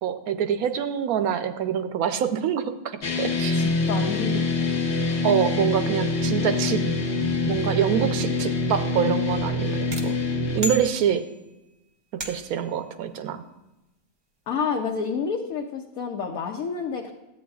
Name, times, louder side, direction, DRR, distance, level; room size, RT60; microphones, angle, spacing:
voice 1, 0.0-2.7 3.2-3.6 5.2-6.8 7.5-10.2 10.5-11.2 12.2-13.4, right 8 dB, 75° right, 9 dB, 1.1 m, -25 dB
sound 1, 3.0-10.6, left 3 dB, 50° left, 1.3 m, -25 dB
voice 2, 3.5-4.5 6.3-7.3 14.5-17.1, left 5 dB, 70° left, 1 dB, 1.1 m, -30 dB
sound 2, 9.9-11.5 12.2-12.7, left 1 dB, 35° right, 0.4 m, -35 dB
12.5 x 8.5 x 2.3 m, 0.98 s
omnidirectional pair, 1.6 m